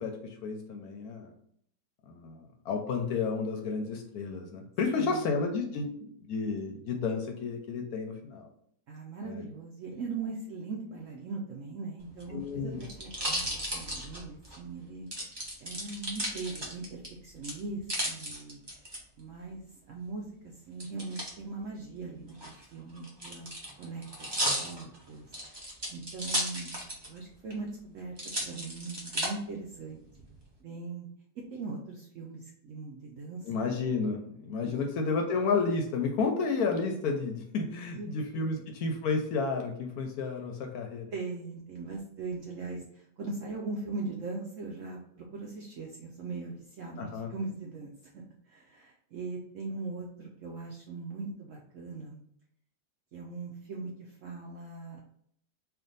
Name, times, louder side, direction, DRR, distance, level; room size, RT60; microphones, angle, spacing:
voice 1, 0.0-1.3 2.1-8.5 9.2-9.4 12.3-12.8 33.5-41.1 47.0-47.3, left 4 dB, 70° left, 3 dB, 0.9 m, -31 dB
voice 2, 5.0-5.3 8.9-15.1 15.6-18.6 19.2-25.3 25.9-26.8 27.1-28.1 28.4-30.0 30.6-31.1 31.5-33.5 34.6-34.9 37.9-38.7 41.1-52.2 53.1-55.0, right 3 dB, 70° right, -1 dB, 0.7 m, -40 dB
sound 1, 12.1-14.6 15.1-17.1 17.4-19.0 20.8-21.3 22.3-27.2 27.5-27.6 28.2-29.3 29.9-30.4, equal, 30° right, 0.5 m, -34 dB
3.4 x 2.6 x 3.9 m, 0.68 s
omnidirectional pair, 1.9 m